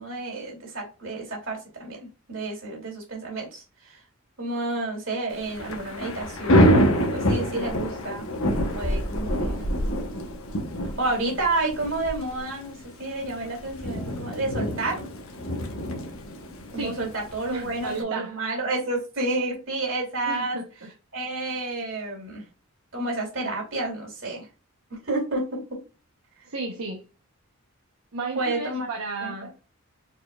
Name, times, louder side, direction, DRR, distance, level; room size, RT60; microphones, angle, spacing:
voice 1, 0.0-2.0 2.3-4.0 4.4-8.2 8.7-9.6 10.8-15.0 16.7-20.6 21.1-22.4 22.9-24.5 24.9-25.8 28.3-28.9 29.2-29.3, right 2 dB, 60° right, -1 dB, 2.6 m, -30 dB
Thunder / Rain, 5.4-18.0, equal, 70° left, 1.0 m, -26 dB
voice 2, 17.5-18.4 20.3-20.9 26.5-27.0 28.1-29.5, right 3 dB, 85° right, 0 dB, 0.9 m, -33 dB
4.9 x 4.3 x 2.3 m, 0.33 s
head